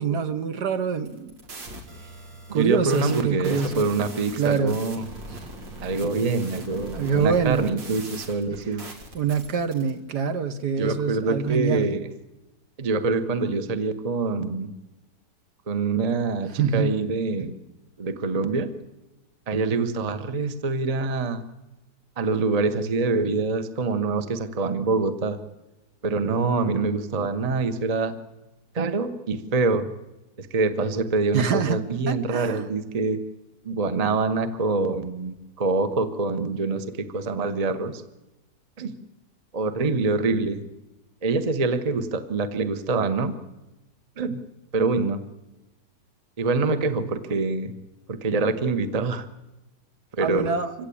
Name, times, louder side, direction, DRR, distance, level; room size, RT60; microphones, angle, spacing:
voice 1, 0.0-1.4 2.5-3.9 4.3-4.8 5.3-5.5 6.9-7.7 9.1-11.9 16.6-17.0 31.3-31.8 32.1-32.7 50.2-50.7, right 6 dB, 65° right, 9 dB, 1.7 m, -25 dB
sound 1, 0.9-9.9, right 2 dB, 90° right, 3.4 m, -41 dB
voice 2, 2.5-5.0 5.8-8.8 10.8-12.1 12.8-14.7 15.7-17.6 18.0-18.7 19.5-21.4 22.2-25.4 26.0-28.1 28.7-29.9 30.4-33.2 33.6-38.0 38.8-38.9 39.5-40.6 41.2-43.3 44.2-44.4 44.7-45.2 46.4-47.7 48.1-49.2 50.1-50.5, right 3 dB, 25° right, 10 dB, 0.9 m, -25 dB
25.5 x 16.5 x 8.6 m, 1.0 s
omnidirectional pair, 1.9 m